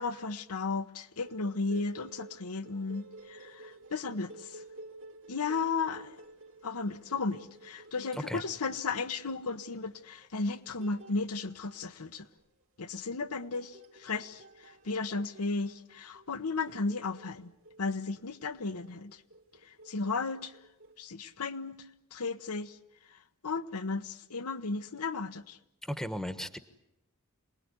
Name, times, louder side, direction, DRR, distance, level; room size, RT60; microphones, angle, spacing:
voice 1, 0.0-4.6 5.3-6.2 6.6-12.3 12.8-17.5 17.8-19.2 19.6-20.6 21.0-21.9 22.1-22.8 23.1-25.6, left 4 dB, 80° left, 1.1 m, -35 dB
sound 1, 1.2-21.0, right 2 dB, 65° right, 3.3 m, -54 dB
voice 2, 25.8-26.6, equal, ahead, 1.2 m, -36 dB
27.5 x 19.5 x 9.7 m
head